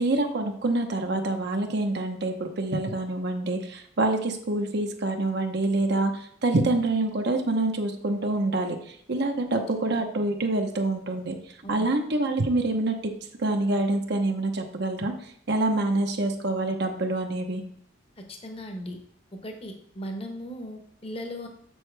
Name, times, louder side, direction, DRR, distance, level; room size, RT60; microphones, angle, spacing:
voice 1, 0.0-11.3 11.7-13.1 13.4-17.6, right 2 dB, 60° right, 4 dB, 0.9 m, -26 dB
voice 2, 18.2-19.0 19.4-21.5, equal, 30° left, 4 dB, 0.9 m, -37 dB
7.3 x 6.3 x 3.3 m, 0.64 s
head